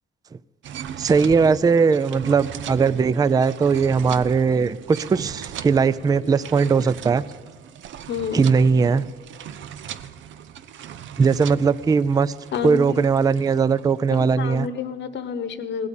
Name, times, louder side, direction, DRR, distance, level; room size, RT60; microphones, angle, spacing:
sound 1, 0.6-14.6, right 9 dB, 70° right, 0.6 m, -39 dB
voice 1, 1.0-7.2 8.3-9.1 11.2-12.3 12.6-14.7, right 5 dB, 20° right, 17 dB, 0.3 m, -19 dB
voice 2, 8.1-8.5 12.5-13.1 14.4-15.9, left 7 dB, 65° left, 11 dB, 1.1 m, -29 dB
17.5 x 8.4 x 7.0 m, 1.4 s
cardioid pair, 90°, 20 cm